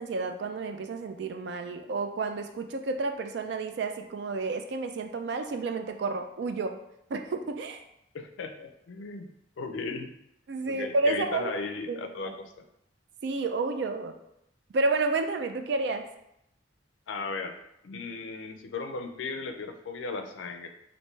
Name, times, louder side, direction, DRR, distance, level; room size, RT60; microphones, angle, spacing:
voice 1, 0.0-6.7 7.1-7.8 10.5-11.5 11.9-12.3 13.2-14.2 14.7-16.1, right 3 dB, 60° right, 6 dB, 0.3 m, -30 dB
voice 2, 8.1-9.3 9.6-10.1 10.6-12.5 17.1-17.6 17.8-20.7, left 4 dB, 75° left, 7 dB, 0.4 m, -36 dB
3.1 x 2.6 x 3.2 m, 0.79 s
head